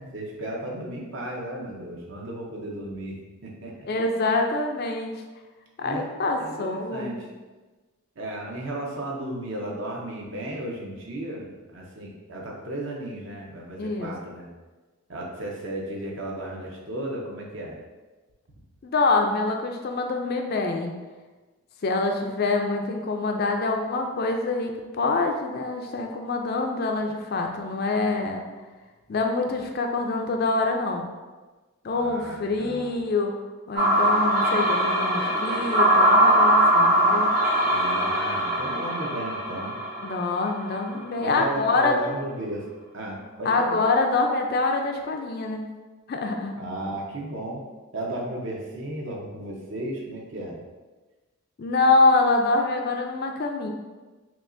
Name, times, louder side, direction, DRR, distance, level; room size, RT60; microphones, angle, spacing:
voice 1, 0.0-3.2 3.4-3.9 5.8-6.0 6.4-7.3 8.2-14.5 15.1-17.8 31.9-33.0 37.6-39.7 41.2-42.7 42.9-43.8 46.6-47.6 47.9-50.6, right 1 dB, 55° right, -2 dB, 0.8 m, -34 dB
voice 2, 3.9-5.2 5.8-7.3 13.8-14.1 18.8-20.9 21.8-28.5 29.1-31.1 31.8-33.3 33.7-37.3 40.0-42.0 43.4-45.7 46.1-46.5 51.6-53.7, left 3 dB, 45° left, 3 dB, 0.4 m, -25 dB
sound 1, 33.8-40.9, right 1 dB, 35° right, 1.3 m, -21 dB
5.8 x 2.4 x 2.5 m, 1.3 s
head